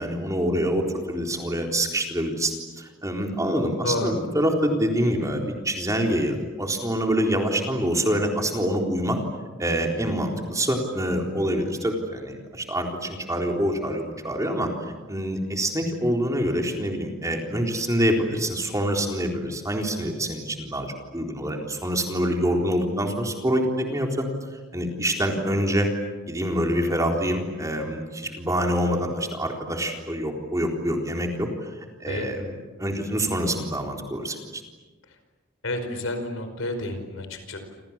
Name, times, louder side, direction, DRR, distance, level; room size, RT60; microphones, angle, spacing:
voice 1, 0.0-9.2 9.6-14.7 15.1-20.9 21.1-24.3 24.7-25.9 26.3-31.7 32.0-34.6, equal, 15° right, 2 dB, 3.9 m, -26 dB
voice 2, 3.8-4.1 32.1-32.5 35.6-37.6, left 1 dB, 65° left, 7 dB, 5.1 m, -30 dB
28.5 x 28.5 x 7.4 m, 1.3 s
head